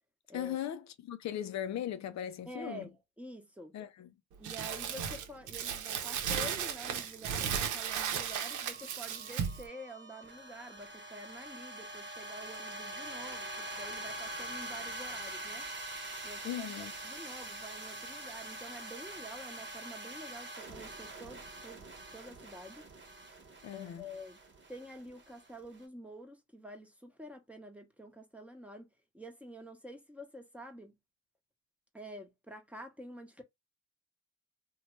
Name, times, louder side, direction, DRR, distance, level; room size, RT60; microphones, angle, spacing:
voice 1, 0.3-2.9 3.7-4.1 16.4-16.9 23.6-24.1, left 10 dB, 65° left, 0.5 m, -38 dB
voice 2, 2.5-3.7 4.4-15.7 16.2-21.9 22.1-22.8 23.7-24.4 24.7-28.9 29.1-30.9 31.9-33.4, equal, 5° right, 0.9 m, -48 dB
Crumpling crinkling, 4.4-9.7, right 8 dB, 80° right, 0.7 m, -35 dB
sound 1, 7.4-25.8, right 1 dB, 40° right, 1.0 m, -45 dB
2.9 x 2.2 x 3.0 m
cardioid pair, 90°, 30 cm